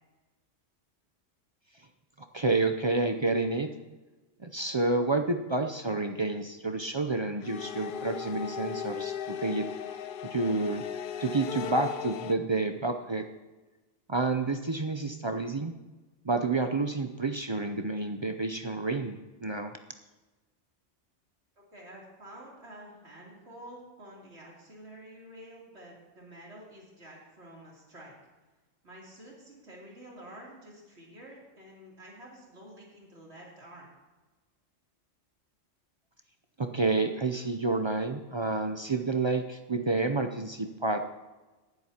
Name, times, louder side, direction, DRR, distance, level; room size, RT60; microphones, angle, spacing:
voice 1, 2.3-3.7 4.4-9.7 10.3-10.8 11.2-13.3 14.1-15.7 16.2-19.7 36.6-41.1, right 3 dB, 40° right, 6 dB, 0.4 m, -29 dB
sound 1, 7.4-12.3, left 9 dB, 60° left, 0.6 m, -37 dB
voice 2, 21.6-28.2 28.8-33.9, right 1 dB, 60° right, -4 dB, 3.5 m, -49 dB
19.0 x 10.5 x 2.9 m, 1.2 s
omnidirectional pair, 1.3 m